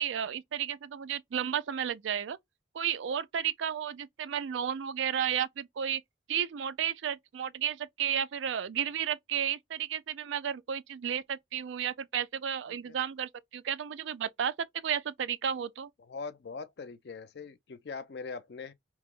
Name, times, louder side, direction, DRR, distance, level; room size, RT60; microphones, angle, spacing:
voice 1, 0.0-2.4 2.7-6.0 6.3-15.9, right 9 dB, 80° right, 0.4 m, -33 dB
voice 2, 12.7-13.0 16.0-18.7, left 4 dB, 60° left, 0.4 m, -42 dB
2.9 x 2.0 x 3.5 m
head